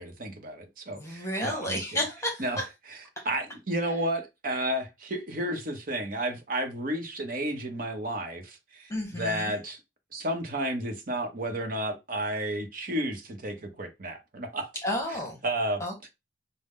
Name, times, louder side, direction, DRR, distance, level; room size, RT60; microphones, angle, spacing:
voice 1, 0.0-1.8 2.4-2.6 3.2-9.8 10.1-14.7 15.1-15.8, right 1 dB, 50° right, 0.9 m, -32 dB
voice 2, 0.9-2.6 3.2-3.3 3.9-4.0 8.9-9.6 14.8-15.4 15.8-16.1, left 1 dB, 15° left, 1.1 m, -32 dB
5.1 x 2.1 x 3.5 m
head